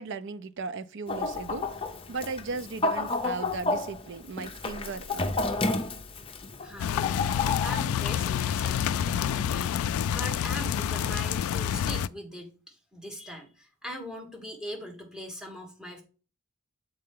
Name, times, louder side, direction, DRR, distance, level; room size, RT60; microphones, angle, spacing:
voice 1, 0.0-1.7 2.1-5.3, right 4 dB, 60° right, 0.5 m, -36 dB
Chicken rooster, 1.1-7.8, left 3 dB, 25° left, 0.7 m, -31 dB
voice 2, 6.6-7.1 7.6-16.0, equal, 5° right, 1.6 m, -41 dB
sound 1, 6.8-12.1, left 9 dB, 90° left, 0.3 m, -28 dB
7.6 x 4.3 x 3.6 m
head